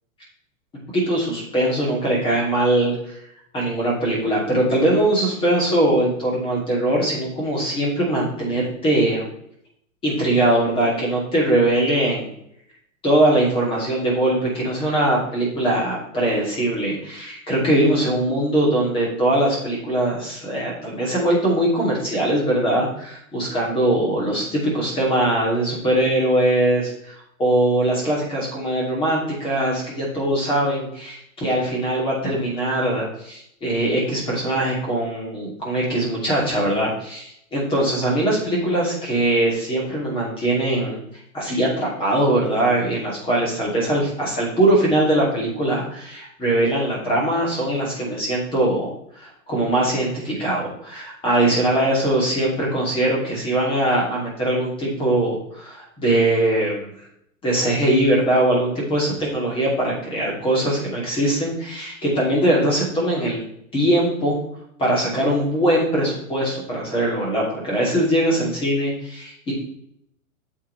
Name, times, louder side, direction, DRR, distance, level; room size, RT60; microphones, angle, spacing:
voice 1, 0.9-3.2 3.5-9.3 10.0-12.3 13.0-41.0 41.3-56.9 57.4-63.4 63.7-64.4 64.8-69.5, right 1 dB, 10° left, -4 dB, 2.8 m, -21 dB
8.9 x 7.3 x 3.3 m, 0.72 s
hypercardioid pair, 165°, 42 cm